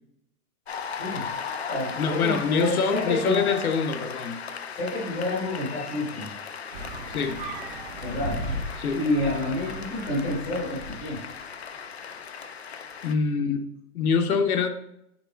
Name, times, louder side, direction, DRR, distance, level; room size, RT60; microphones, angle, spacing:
Cheering / Applause, 0.7-13.2, left 6 dB, 45° left, 0.4 m, -37 dB
voice 1, 0.8-1.3 1.7-3.4 4.8-6.3 8.0-8.4 8.9-11.2 13.4-13.5, left 2 dB, 5° left, -5 dB, 0.8 m, -28 dB
voice 2, 2.0-4.4 7.1-7.4 8.8-9.0 13.0-14.7, left 5 dB, 65° left, 6 dB, 0.9 m, -25 dB
sound 1, 6.7-11.3, equal, 35° right, 0.9 m, -36 dB
6.0 x 4.7 x 4.3 m, 0.77 s
hypercardioid pair, 175°, 46 cm